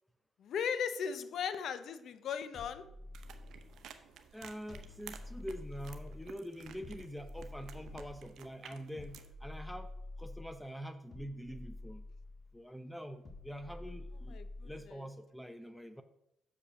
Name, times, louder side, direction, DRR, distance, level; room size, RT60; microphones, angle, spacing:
voice 1, 0.4-2.8 14.3-15.0, left 7 dB, 70° left, 11 dB, 0.7 m, -37 dB
sound 1, 2.5-3.9 4.7-6.3 6.8-8.2 9.0-10.6 11.1-12.5 13.2-14.9, left 2 dB, 40° left, 1.5 m, -48 dB
sound 2, 3.1-9.3, right 7 dB, 75° right, 0.7 m, -53 dB
voice 2, 4.3-9.9 10.2-12.0 12.5-14.4 14.6-16.0, equal, 5° left, 9 dB, 0.7 m, -45 dB
6.7 x 5.0 x 6.2 m, 0.80 s
cardioid pair, 90°, 0 cm